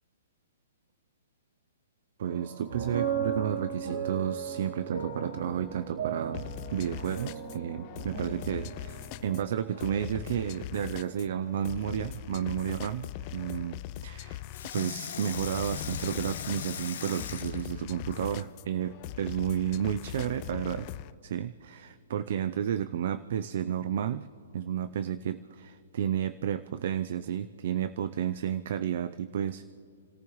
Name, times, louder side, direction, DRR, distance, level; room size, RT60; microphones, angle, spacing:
voice 1, 2.2-14.4 14.7-20.9 21.2-24.3 24.5-29.6, right 9 dB, 60° right, 14 dB, 0.5 m, -32 dB
sound 1, 2.2-11.6, right 7 dB, 85° right, 3.1 m, -37 dB
sound 2, 6.3-21.1, left 15 dB, 35° left, 0.4 m, -42 dB
Water tap faucet / Sink (filling or washing), 11.5-12.2 14.5-18.5 19.1-19.2, left 8 dB, 70° left, 1.1 m, -40 dB
30.0 x 14.0 x 3.1 m, 2.6 s
hypercardioid pair, 145°, 0 cm